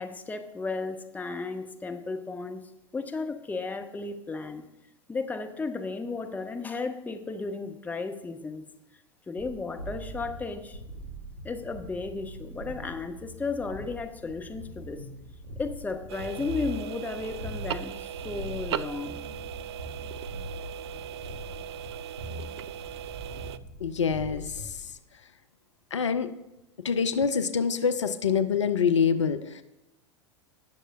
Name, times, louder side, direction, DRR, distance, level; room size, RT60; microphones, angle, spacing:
voice 1, 0.0-4.7 5.1-10.8 11.4-15.1 15.6-19.2, left 3 dB, 10° left, 6 dB, 0.8 m, -34 dB
sound 1, 9.4-24.9, equal, 80° right, 3.2 m, -42 dB
sound 2, 16.1-23.6, right 10 dB, 60° right, 0.4 m, -38 dB
voice 2, 23.8-24.9 25.9-26.3 26.8-29.6, left 6 dB, 75° left, 11 dB, 0.5 m, -26 dB
19.0 x 6.4 x 2.6 m, 0.96 s
figure-of-eight pair, 85°, 16 cm